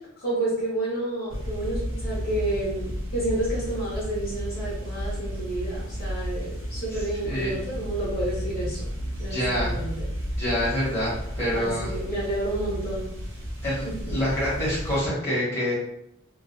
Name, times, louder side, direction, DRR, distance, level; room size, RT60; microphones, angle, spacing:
voice 1, 0.2-8.8 9.2-10.0 11.5-13.1 13.8-14.1, right 1 dB, 50° left, -6 dB, 0.7 m, -30 dB
sound 1, 1.3-15.0, equal, 65° right, 0.8 m, -33 dB
voice 2, 7.2-7.6 9.3-9.8 10.4-11.9 13.6-15.7, equal, 15° left, -8 dB, 1.1 m, -26 dB
2.3 x 2.3 x 2.5 m, 0.77 s
head